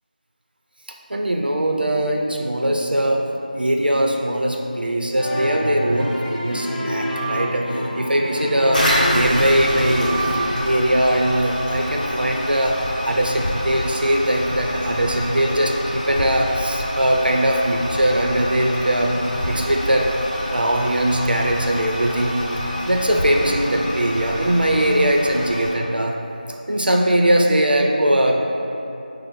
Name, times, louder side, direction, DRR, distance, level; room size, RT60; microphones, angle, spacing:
voice 1, 1.1-3.3 3.5-10.2 10.6-19.2 19.5-20.1 20.5-22.4 22.9-26.2 26.5-28.4, right 1 dB, 75° right, 1 dB, 0.5 m, -20 dB
sound 1, 5.2-10.5, right 1 dB, 5° right, 0.7 m, -26 dB
Toilet flush, 8.7-25.7, equal, 50° left, 1.3 m, -27 dB
4.7 x 2.0 x 4.3 m, 2.8 s
figure-of-eight pair, 175°, 5 cm